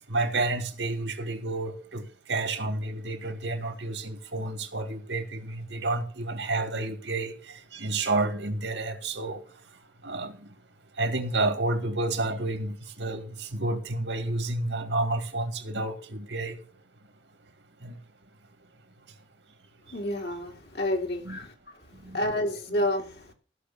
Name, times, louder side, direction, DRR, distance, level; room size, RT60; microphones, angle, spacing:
voice 1, 0.1-9.4 10.0-10.5 11.0-16.6 17.8-18.0 21.2-21.4 22.0-22.2, right 2 dB, 80° right, 2.2 m, -30 dB
voice 2, 19.9-21.5 22.1-23.3, left 1 dB, 65° left, 2.7 m, -29 dB
15.0 x 6.5 x 6.9 m
head